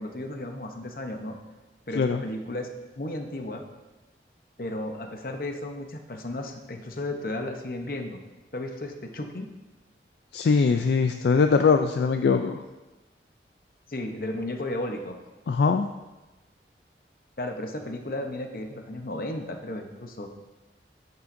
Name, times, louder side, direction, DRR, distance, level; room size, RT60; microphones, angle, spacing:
voice 1, 0.0-1.4 1.9-3.6 4.6-8.2 8.5-9.5 13.9-15.2 17.4-20.3, left 1 dB, 55° left, 4 dB, 0.8 m, -34 dB
voice 2, 10.3-12.6 15.5-15.9, left 5 dB, 70° left, 7 dB, 0.3 m, -22 dB
9.3 x 8.6 x 2.6 m, 1.1 s
head